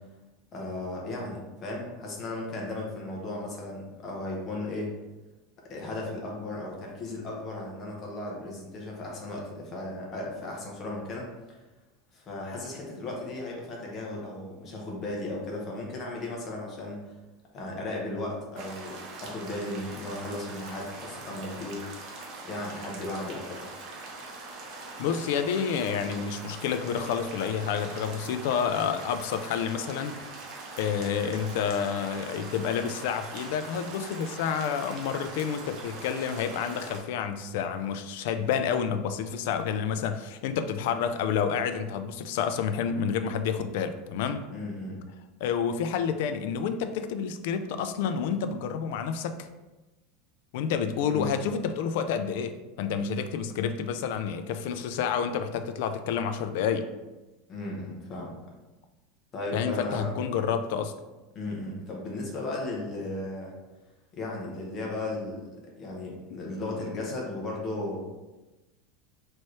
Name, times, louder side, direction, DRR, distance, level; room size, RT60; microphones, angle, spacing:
voice 1, 0.5-4.9 5.7-11.6 12.1-17.1 17.5-21.8 22.4-23.6 44.5-45.0 51.1-51.3 57.5-58.4 59.3-60.1 61.3-63.5 64.2-68.0, left 2 dB, 30° left, -2 dB, 0.9 m, -35 dB
sound 1, 18.6-37.0, right 3 dB, 45° right, 0.8 m, -42 dB
voice 2, 25.0-30.2 30.8-44.4 45.4-49.5 50.5-56.9 59.5-60.9, left 7 dB, 65° left, 9 dB, 0.3 m, -29 dB
4.5 x 3.0 x 3.1 m, 1.1 s
supercardioid pair, 165°, 0 cm